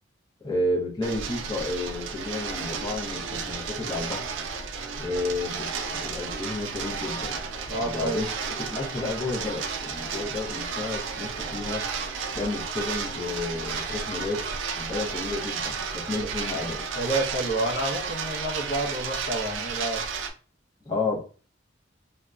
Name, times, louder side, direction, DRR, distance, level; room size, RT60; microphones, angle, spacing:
voice 1, 0.4-4.3 5.0-7.4 7.7-8.3 8.7-11.8 12.3-14.4 14.7-16.8 20.8-21.2, left 2 dB, 20° left, -2 dB, 0.7 m, -31 dB
sound 1, 1.0-20.3, right 5 dB, 75° right, 0.4 m, -33 dB
voice 2, 7.7-8.2 16.2-16.3 17.0-20.0, right 2 dB, 50° left, -2 dB, 0.8 m, -29 dB
2.8 x 2.2 x 2.3 m, 0.37 s
head